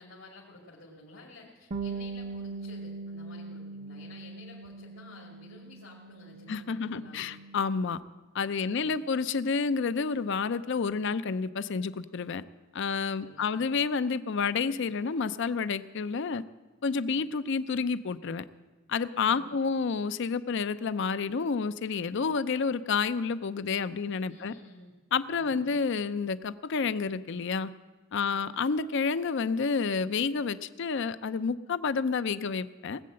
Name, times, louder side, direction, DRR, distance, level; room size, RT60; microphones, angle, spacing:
voice 1, 0.0-7.3 8.5-9.0 13.0-13.6 17.0-17.1 19.1-19.7 24.3-24.9 25.4-25.7 28.2-28.5, left 2 dB, 80° left, -3 dB, 2.4 m, -52 dB
Bass guitar, 1.7-8.0, right 4 dB, 35° right, 0.6 m, -41 dB
voice 2, 6.5-8.0 8.3-12.4 12.7-16.4 16.8-18.4 18.9-24.5 25.1-27.7 28.1-33.0, left 5 dB, 65° left, 14 dB, 0.5 m, -29 dB
19.0 x 7.6 x 7.6 m, 1.2 s
head